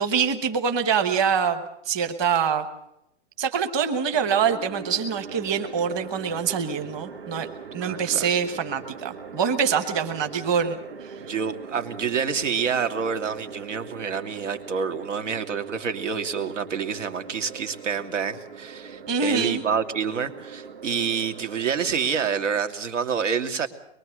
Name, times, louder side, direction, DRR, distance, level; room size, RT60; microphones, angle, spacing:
voice 1, 0.0-2.6 3.4-7.5 7.7-11.2 19.1-19.6, right 6 dB, 15° right, 7 dB, 1.1 m, -25 dB
sound 1, 4.1-22.6, right 5 dB, 50° right, 1.8 m, -41 dB
voice 2, 7.8-8.3 11.3-23.7, right 6 dB, 85° right, 7 dB, 2.9 m, -27 dB
23.0 x 22.5 x 6.6 m, 0.79 s
hypercardioid pair, 180°, 36 cm